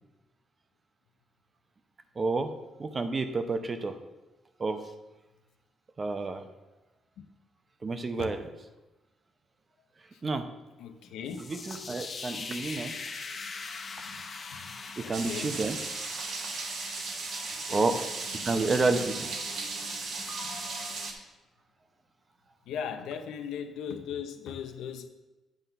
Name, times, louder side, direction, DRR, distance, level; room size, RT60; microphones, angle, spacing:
voice 1, 2.2-2.5 2.8-4.0 4.6-4.8 6.0-6.4 7.8-8.5 10.2-10.5 11.4-13.0 15.0-15.8 17.7-18.0 18.4-19.3, right 3 dB, 35° right, 8 dB, 0.8 m, -29 dB
voice 2, 10.8-11.4 14.5-14.7 15.0-15.5 17.7-18.0 22.7-25.1, left 7 dB, 85° left, 7 dB, 0.6 m, -38 dB
sound 1, 11.3-21.1, left 4 dB, 45° left, 0.8 m, -42 dB
sound 2, 15.1-21.1, right 4 dB, 65° right, 1.2 m, -36 dB
9.5 x 3.8 x 5.6 m, 1.1 s
cardioid pair, 90°, 0 cm